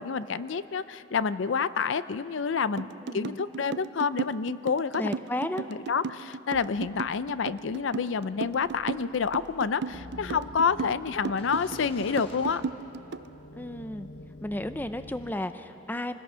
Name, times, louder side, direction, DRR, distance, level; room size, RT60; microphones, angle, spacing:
voice 1, 0.0-2.9 3.1-5.1 5.7-12.6, left 6 dB, 75° left, 15 dB, 0.5 m, -28 dB
sound 1, 2.8-13.3, right 5 dB, 60° right, 0.4 m, -35 dB
voice 2, 3.0-3.4 5.0-5.7 13.5-14.1 14.4-16.2, left 1 dB, 10° left, 10 dB, 0.5 m, -33 dB
sound 2, 6.5-13.5, left 1 dB, 30° left, 1.3 m, -52 dB
sound 3, 9.9-15.3, left 1 dB, 55° left, 1.0 m, -47 dB
26.5 x 19.5 x 5.6 m, 3.0 s
head